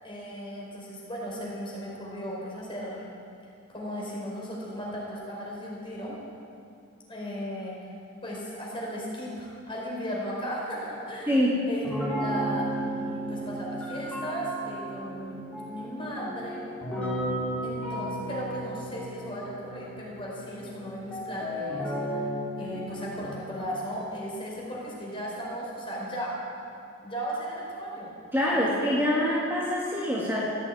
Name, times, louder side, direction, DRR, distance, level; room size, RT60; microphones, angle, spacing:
voice 1, 0.0-3.0 3.7-6.2 7.1-7.7 8.2-11.4 11.7-16.7 17.6-22.3 22.6-26.4 27.0-28.1 28.5-28.9, equal, 25° left, -5 dB, 4.6 m, -36 dB
voice 2, 11.3-11.6 28.3-30.4, left 1 dB, 10° right, -6 dB, 1.8 m, -25 dB
sound 1, 11.8-23.1, equal, 5° left, 4.7 m, -34 dB
16.0 x 8.8 x 8.6 m, 2.5 s
head